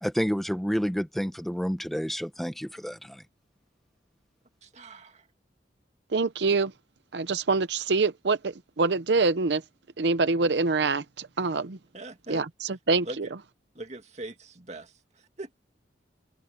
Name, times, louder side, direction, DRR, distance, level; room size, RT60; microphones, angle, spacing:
voice 1, 0.0-3.2, equal, ahead, 0.9 m, -29 dB
voice 2, 4.6-5.3 11.9-12.4 13.0-13.3 13.8-15.6, right 2 dB, 40° right, 2.1 m, -41 dB
voice 3, 6.1-6.7 7.1-9.6 10.0-11.8 12.3-13.3, right 3 dB, 75° right, 0.7 m, -25 dB
open air
head